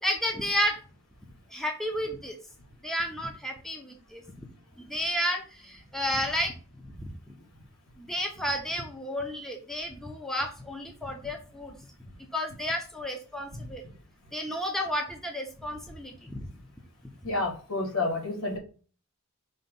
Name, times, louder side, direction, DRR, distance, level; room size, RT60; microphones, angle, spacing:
voice 1, 0.0-0.8 1.5-2.4 2.8-4.2 4.8-6.5 8.0-11.8 12.3-13.8 14.3-16.5, equal, ahead, 2 dB, 0.8 m, -31 dB
voice 2, 17.2-18.6, left 2 dB, 75° left, -2 dB, 2.9 m, -29 dB
5.4 x 3.4 x 5.4 m, 0.38 s
head